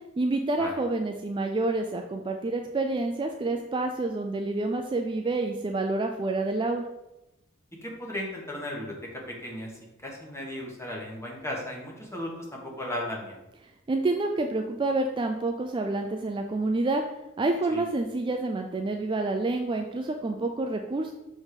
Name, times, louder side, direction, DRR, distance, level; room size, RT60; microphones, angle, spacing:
voice 1, 0.2-6.8 13.9-17.0 17.4-21.1, right 2 dB, 25° right, 4 dB, 0.3 m, -28 dB
voice 2, 7.8-9.7 10.0-13.4 17.7-17.8, left 1 dB, 15° left, -2 dB, 1.3 m, -36 dB
6.5 x 3.6 x 4.8 m, 0.97 s
head